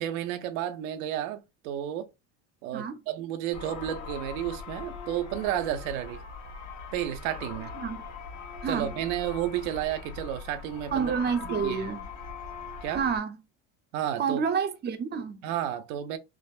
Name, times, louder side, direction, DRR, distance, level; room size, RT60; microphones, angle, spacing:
voice 1, 0.0-2.1 2.6-6.2 6.9-7.7 8.7-11.1 11.4-11.9 12.8-13.0 13.9-14.4 15.4-16.2, right 11 dB, 80° right, 0.6 m, -32 dB
sound 1, 3.5-13.2, left 5 dB, 45° left, 1.1 m, -41 dB
voice 2, 10.9-12.1 12.9-13.4 14.2-15.4, right 6 dB, 25° right, 0.5 m, -29 dB
3.4 x 2.0 x 2.3 m
supercardioid pair, 90°, 40 cm